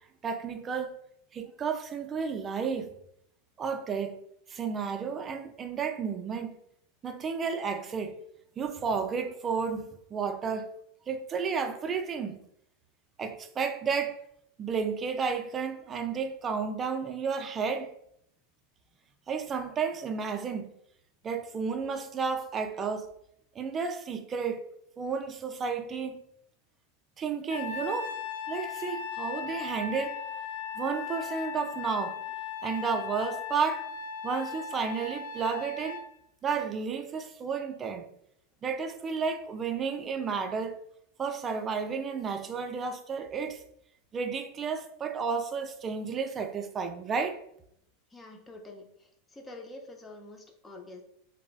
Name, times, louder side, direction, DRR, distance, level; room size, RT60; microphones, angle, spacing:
voice 1, 0.2-0.9 1.3-2.9 3.6-4.2 4.5-6.6 7.0-8.1 8.6-10.7 11.1-12.4 13.2-14.2 14.6-17.9 19.3-20.7 21.2-23.1 23.6-24.6 25.0-26.2 27.2-28.1 28.5-30.2 30.8-32.2 32.6-33.9 34.2-36.0 36.4-38.0 38.6-40.8 41.2-43.6 44.1-47.4, right 5 dB, 30° right, 0.3 m, -32 dB
Trumpet, 27.5-36.1, left 7 dB, 80° left, 0.4 m, -37 dB
voice 2, 48.1-51.0, left 2 dB, 15° left, 0.6 m, -47 dB
3.2 x 2.0 x 2.3 m
hypercardioid pair, 105°, 0 cm